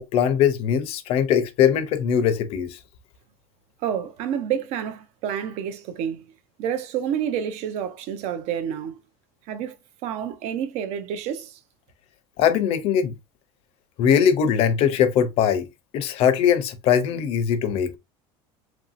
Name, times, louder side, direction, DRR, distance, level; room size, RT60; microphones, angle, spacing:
voice 1, 0.0-2.8 12.4-13.1 14.0-15.7 15.9-17.9, left 8 dB, 55° left, 0.5 m, -21 dB
voice 2, 3.8-6.3 6.6-9.0 9.5-9.8 10.0-11.6, right 9 dB, 65° right, 0.5 m, -29 dB
2.9 x 2.6 x 2.4 m
cardioid pair, 135°, 12 cm